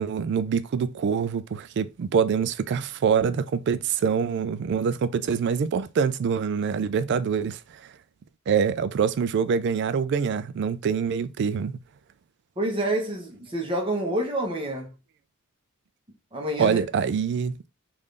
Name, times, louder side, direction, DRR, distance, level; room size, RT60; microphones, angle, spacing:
voice 1, 0.0-7.8 8.5-11.7 16.6-17.7, right 6 dB, 55° right, 0.3 m, -25 dB
voice 2, 12.6-14.9 16.3-16.8, right 1 dB, 25° right, 0.9 m, -28 dB
3.6 x 2.5 x 3.3 m
head